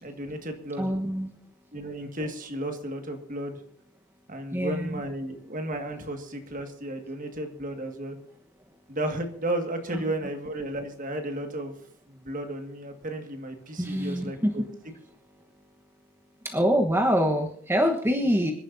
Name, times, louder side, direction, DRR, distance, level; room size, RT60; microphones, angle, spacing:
voice 1, 0.0-0.9 1.7-3.6 4.3-8.2 8.9-11.7 12.1-14.4, right 1 dB, 40° right, 5 dB, 2.0 m, -33 dB
voice 2, 0.8-1.3 4.5-5.0 9.9-10.0 13.8-14.5 16.4-18.5, equal, 10° right, 2 dB, 1.2 m, -25 dB
26.0 x 11.0 x 2.7 m, 0.67 s
head